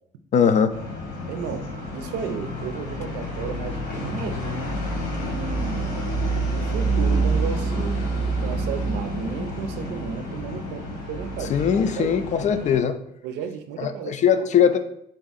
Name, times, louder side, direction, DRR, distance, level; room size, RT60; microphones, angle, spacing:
voice 1, 0.3-0.7 11.5-12.9 13.8-14.8, left 7 dB, 45° left, 9 dB, 0.4 m, -20 dB
sound 1, 0.7-12.8, right 2 dB, 70° left, 1.4 m, -28 dB
voice 2, 1.3-1.7 1.9-4.8 5.1-5.9 6.5-8.0 8.4-12.5 13.2-14.5, right 6 dB, 85° right, 8 dB, 0.5 m, -34 dB
3.8 x 3.5 x 4.0 m, 0.73 s
cardioid pair, 110°, 17 cm